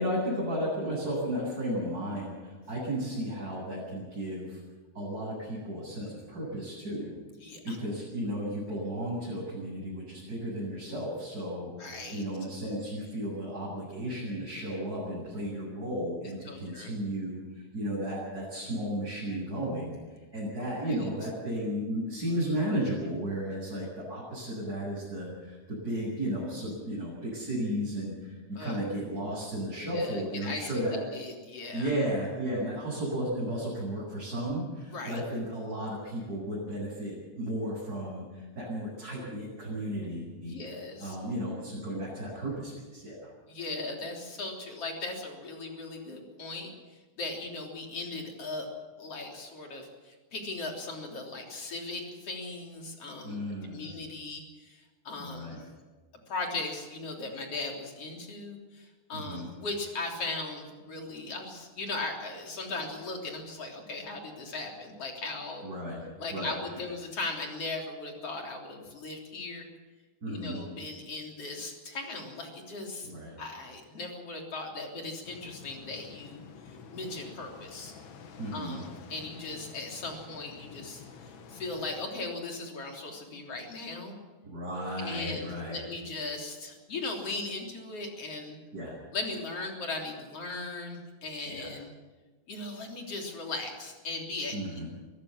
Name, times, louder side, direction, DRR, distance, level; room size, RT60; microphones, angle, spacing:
voice 1, 0.0-4.6 4.9-7.1 7.6-20.0 20.3-31.0 31.7-40.5 41.0-43.3 53.2-54.0 55.2-55.6 59.1-59.5 65.6-66.0 66.3-66.8 70.2-70.6 73.0-73.4 78.4-78.8 84.4-85.8 88.7-89.0 91.6-91.7 94.5-94.9, equal, 20° right, -8 dB, 8.4 m, -34 dB
voice 2, 7.4-7.8 11.8-12.2 16.5-16.9 20.8-21.0 28.5-28.8 29.8-31.9 34.9-35.2 40.4-41.2 43.5-46.7 47.2-48.7 49.0-55.6 56.3-65.6 66.2-69.6 70.3-73.1 73.4-76.4 76.9-77.9 78.5-81.0 81.5-84.1 85.0-88.6 89.1-91.9 92.5-94.8, left 3 dB, 35° left, 1 dB, 4.0 m, -38 dB
sound 1, 75.2-82.1, left 6 dB, 85° left, 3.9 m, -49 dB
23.5 x 16.5 x 7.3 m, 1.3 s
omnidirectional pair, 4.8 m